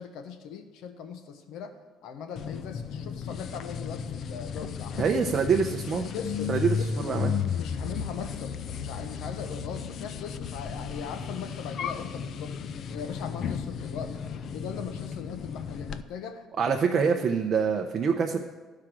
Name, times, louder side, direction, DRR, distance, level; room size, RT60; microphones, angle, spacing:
voice 1, 0.0-5.0 6.1-6.5 6.8-12.6 12.9-14.2 14.5-17.1, left 7 dB, 75° left, 8 dB, 1.0 m, -40 dB
sound 1, 2.4-16.0, left 6 dB, 50° left, 0.4 m, -34 dB
voice 2, 4.9-6.0 6.5-7.3 16.6-18.4, right 6 dB, 40° right, 3 dB, 0.6 m, -25 dB
13.5 x 4.9 x 6.1 m, 1.3 s
cardioid pair, 135°, 0 cm